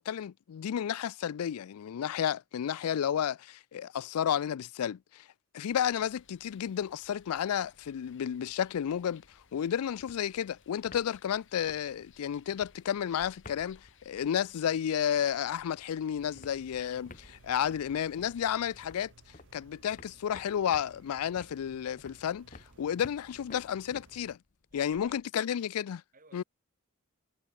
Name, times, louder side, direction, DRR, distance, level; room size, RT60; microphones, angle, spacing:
voice 1, 0.0-5.2 5.5-9.2 9.5-19.1 19.5-22.5 22.8-24.4 24.7-26.0 26.3-26.4, left 9 dB, 85° left, 0.4 m, -32 dB
sound 1, 5.7-18.9, left 5 dB, 60° left, 2.8 m, -62 dB
sound 2, 6.5-7.2 7.5-7.6 7.8-15.2 15.5-25.3, left 3 dB, 35° left, 1.0 m, -55 dB
voice 2, 16.2-16.9 24.7-25.2 26.1-26.4, right 3 dB, 40° right, 4.2 m, -62 dB
sound 3, 16.2-24.4, right 3 dB, 55° right, 0.8 m, -59 dB
head